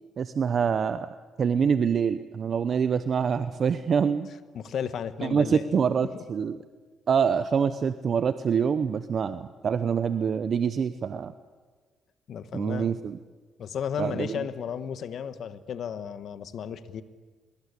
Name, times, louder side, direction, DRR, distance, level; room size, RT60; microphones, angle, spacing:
voice 1, 0.2-1.1 1.4-4.3 5.2-6.6 7.1-11.3 12.5-13.2 14.0-14.3, right 6 dB, 50° right, 12 dB, 0.9 m, -25 dB
voice 2, 4.5-5.6 6.1-6.2 12.3-12.9 13.6-17.0, left 8 dB, 65° left, 12 dB, 1.5 m, -34 dB
25.0 x 22.0 x 8.5 m, 1.4 s
cardioid pair, 90°, 0 cm